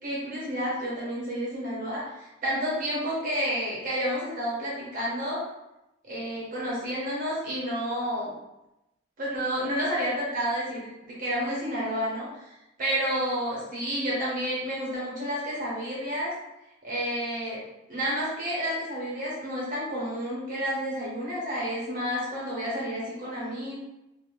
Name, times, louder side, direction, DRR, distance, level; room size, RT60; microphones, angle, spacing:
voice 1, 0.0-5.4 6.0-8.3 9.2-16.3 16.8-17.6 17.9-23.8, equal, 40° right, -5 dB, 0.7 m, -30 dB
2.6 x 2.1 x 2.9 m, 0.93 s
head